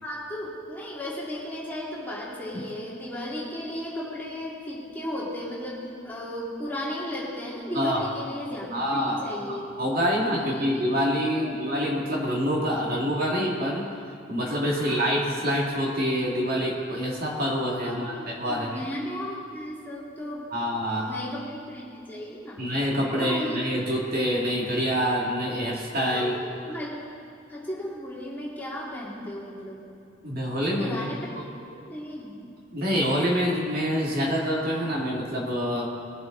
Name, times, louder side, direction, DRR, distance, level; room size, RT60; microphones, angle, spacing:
voice 1, 0.0-9.6 10.1-11.5 14.7-15.2 17.8-20.4 21.0-22.6 23.1-23.6 26.1-27.0 27.5-29.9 30.8-31.4 31.8-32.4, left 1 dB, 10° left, -6 dB, 2.3 m, -35 dB
voice 2, 8.7-13.9 14.3-18.8 20.5-21.1 22.6-26.3 30.2-31.0 31.4-31.5 32.7-35.9, equal, 45° right, -3 dB, 2.1 m, -26 dB
21.0 x 7.8 x 3.8 m, 2.6 s
head